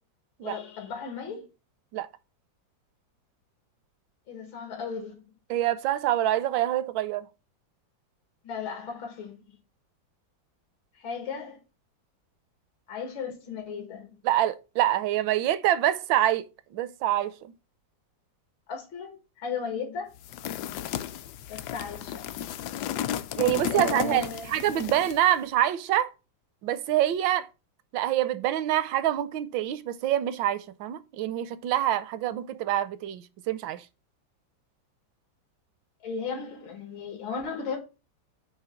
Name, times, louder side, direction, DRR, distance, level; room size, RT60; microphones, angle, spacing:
voice 1, 0.4-1.5 4.3-5.2 8.4-9.6 11.0-11.6 12.9-14.1 18.7-20.1 21.5-22.3 23.7-24.5 36.0-37.8, left 5 dB, 85° left, 2.5 m, -35 dB
voice 2, 5.5-7.3 14.2-16.5 16.7-17.5 23.4-26.1 26.6-27.5 27.9-33.8, right 12 dB, 75° right, 1.3 m, -26 dB
sound 1, 20.2-25.3, left 11 dB, 70° left, 1.0 m, -34 dB
8.1 x 3.1 x 5.8 m
omnidirectional pair, 2.1 m